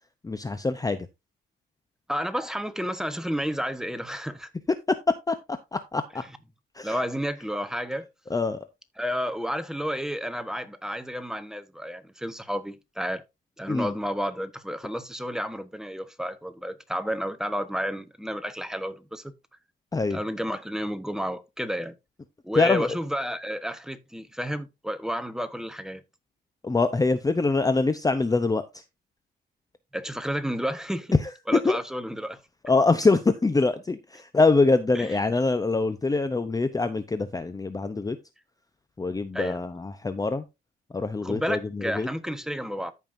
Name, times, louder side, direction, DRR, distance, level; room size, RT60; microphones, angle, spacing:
voice 1, 0.2-1.1 4.9-5.0 5.3-5.4 5.7-6.2 6.8-7.0 8.3-8.7 13.7-13.9 19.9-20.2 22.6-22.9 26.6-28.6 31.6-31.8 32.6-38.2 39.0-40.4 40.9-42.1, left 3 dB, 20° left, 0.8 m, -24 dB
voice 2, 2.1-4.5 6.8-8.1 9.0-13.2 13.6-19.3 20.1-21.9 22.4-26.0 29.9-31.1 31.5-32.4 34.9-35.2 39.3-39.6 41.2-42.9, equal, 5° right, 1.2 m, -31 dB
14.0 x 5.5 x 2.7 m
cardioid pair, 90°, 20 cm